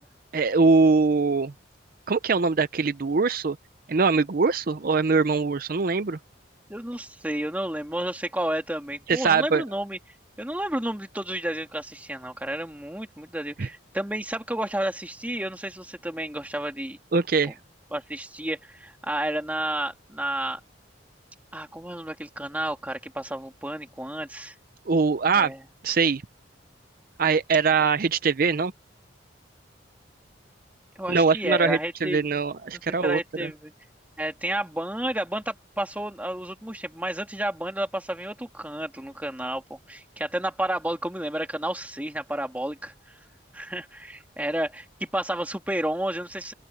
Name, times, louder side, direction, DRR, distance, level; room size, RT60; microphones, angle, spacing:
voice 1, 0.3-1.5 2.1-3.6 3.9-6.2 9.1-9.6 13.6-13.7 17.1-17.6 24.9-25.5 25.8-26.2 27.2-28.7 31.1-33.5, right 4 dB, 50° right, 0.6 m, -22 dB
voice 2, 6.7-10.0 10.4-17.0 17.9-20.6 21.5-24.6 25.3-25.6 31.0-32.3 32.7-33.7 34.2-42.9 43.5-46.5, right 1 dB, 10° right, 2.4 m, -31 dB
open air
head